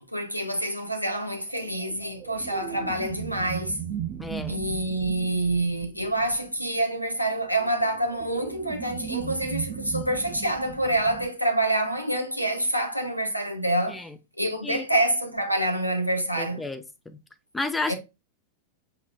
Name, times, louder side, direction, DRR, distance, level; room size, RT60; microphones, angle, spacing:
voice 1, 0.1-3.8 4.5-14.0 14.4-16.6 17.9-18.0, right 1 dB, 90° left, 0.8 m, -27 dB
sound 1, 1.5-6.6 7.5-11.3, right 10 dB, 35° right, 0.6 m, -37 dB
voice 2, 4.2-4.6 13.9-14.1 14.6-14.9 16.4-17.2 17.5-17.9, left 3 dB, 10° left, 0.6 m, -32 dB
6.6 x 2.9 x 2.3 m
figure-of-eight pair, 90°, 0 cm